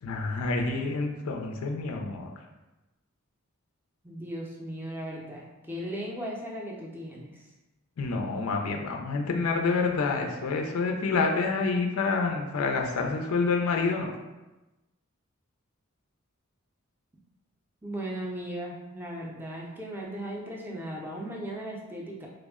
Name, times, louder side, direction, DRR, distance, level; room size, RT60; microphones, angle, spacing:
voice 1, 0.0-2.3 8.0-14.1, left 4 dB, 85° left, 2 dB, 0.4 m, -28 dB
voice 2, 4.0-7.5 17.8-22.3, right 1 dB, 10° right, -2 dB, 0.4 m, -37 dB
3.3 x 2.0 x 3.5 m, 1.1 s
head